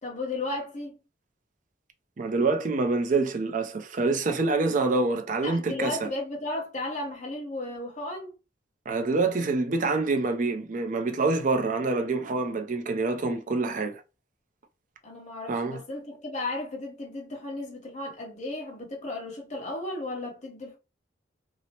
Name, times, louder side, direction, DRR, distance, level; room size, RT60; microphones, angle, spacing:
voice 1, 0.0-1.0 5.4-8.3 15.0-20.8, left 2 dB, 40° left, 0.9 m, -34 dB
voice 2, 2.2-6.0 8.9-14.0 15.5-15.8, right 3 dB, 45° right, 0.4 m, -26 dB
2.8 x 2.0 x 2.8 m
head